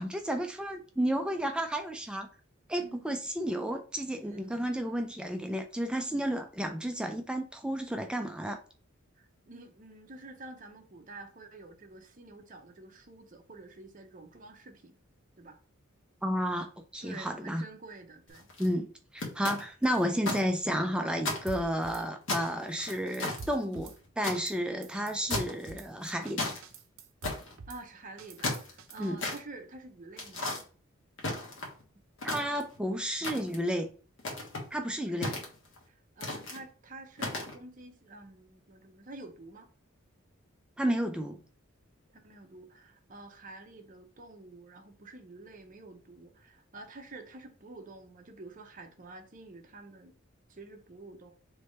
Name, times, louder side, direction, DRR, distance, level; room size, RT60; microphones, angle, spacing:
voice 1, 0.0-2.3 2.7-8.6 16.2-17.6 18.6-26.5 29.0-29.2 32.2-33.9 34.7-35.4 40.8-41.4, equal, 5° right, 0.3 m, -32 dB
voice 2, 2.8-3.2 4.2-4.5 9.2-15.0 15.4-15.6 17.0-18.8 27.7-30.5 35.0-35.4 35.9-39.7 42.1-50.1 50.5-51.3, right 2 dB, 40° right, 0.7 m, -49 dB
sound 1, 18.3-18.7 19.2-20.4 20.8-20.9 21.2-21.9 22.3-24.4 25.3-25.7 26.0-26.6 27.2-27.6 28.2-29.4 30.2-30.6 31.2-31.8 32.2-32.8 33.2-33.7 34.2-34.7 35.2-35.8 36.2-36.6 37.2-37.5, left 2 dB, 65° left, 1.3 m, -34 dB
Drum kit / Snare drum, 21.5-22.0 22.4-22.5 22.8-24.0 24.3-24.6 24.8-25.9 26.3-26.4 26.6-27.8 28.2-29.1, right 4 dB, 80° right, 0.6 m, -45 dB
3.4 x 3.2 x 4.1 m
head